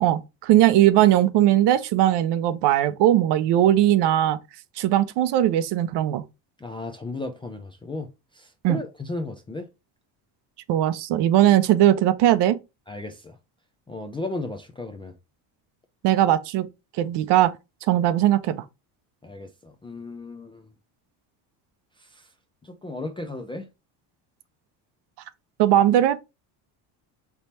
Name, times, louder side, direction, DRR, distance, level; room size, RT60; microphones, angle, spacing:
voice 1, 0.0-4.4 4.8-6.2 8.6-8.8 10.7-12.6 16.0-16.7 17.0-17.5 17.9-18.6 25.6-26.2, right 12 dB, 60° right, 0.6 m, -19 dB
voice 2, 6.6-8.1 8.3-9.7 12.9-13.4 13.9-15.1 19.2-20.7 22.0-22.2 22.6-23.7, left 2 dB, 10° left, 0.3 m, -35 dB
3.4 x 2.9 x 4.1 m
cardioid pair, 110°, 47 cm